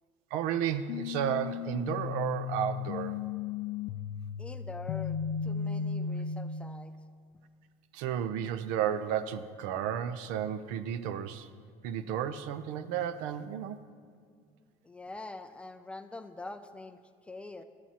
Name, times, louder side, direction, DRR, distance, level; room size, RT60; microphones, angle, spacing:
voice 1, 0.3-3.2 7.9-11.5 11.8-13.8, right 9 dB, 85° right, 13 dB, 0.6 m, -33 dB
sound 1, 0.9-6.8, left 7 dB, 75° left, 0.4 m, -35 dB
voice 2, 4.4-6.9 14.8-17.6, left 2 dB, 10° left, 9 dB, 0.3 m, -44 dB
18.0 x 11.5 x 2.9 m, 2.1 s
cardioid pair, 155°, 13 cm